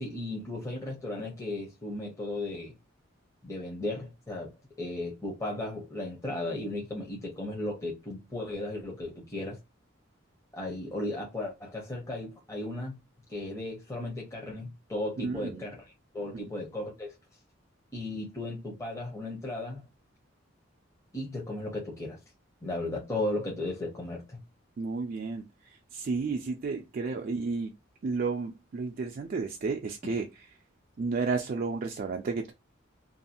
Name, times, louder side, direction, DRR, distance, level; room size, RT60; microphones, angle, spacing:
voice 1, 0.0-2.7 3.4-9.6 10.5-13.0 13.3-15.8 16.1-17.1 17.9-19.8 21.1-22.2 22.6-24.4, left 2 dB, 15° left, 0.7 m, -35 dB
voice 2, 15.2-15.7 16.3-16.4 24.8-27.7 28.0-30.5 31.0-32.5, right 4 dB, 45° right, 0.3 m, -32 dB
2.6 x 2.3 x 2.6 m
head